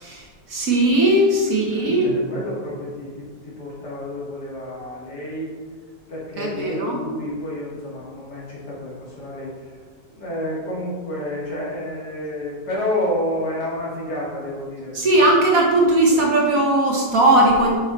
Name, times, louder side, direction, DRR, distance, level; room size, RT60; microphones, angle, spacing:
voice 1, 0.0-2.2 6.4-7.0 14.9-17.7, right 1 dB, 55° right, -1 dB, 1.4 m, -18 dB
voice 2, 1.7-5.5 6.1-9.7 10.1-15.3 16.1-16.2, left 1 dB, 60° left, -6 dB, 2.8 m, -30 dB
7.3 x 5.6 x 4.1 m, 1.5 s
omnidirectional pair, 2.0 m